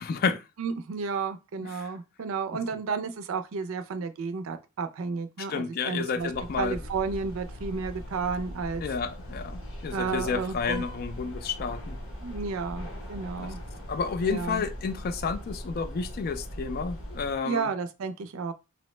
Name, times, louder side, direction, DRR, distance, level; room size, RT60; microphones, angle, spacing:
voice 1, 0.0-0.4 1.6-1.9 5.4-6.8 8.8-12.0 13.4-13.5 13.9-17.7, left 5 dB, 50° left, 0.3 m, -31 dB
voice 2, 0.6-6.3 6.6-8.8 9.9-10.8 12.2-13.6 14.2-14.6 17.4-18.5, right 5 dB, 85° right, 0.4 m, -32 dB
sound 1, 6.2-17.4, equal, 75° left, 1.0 m, -40 dB
2.7 x 2.1 x 3.0 m
head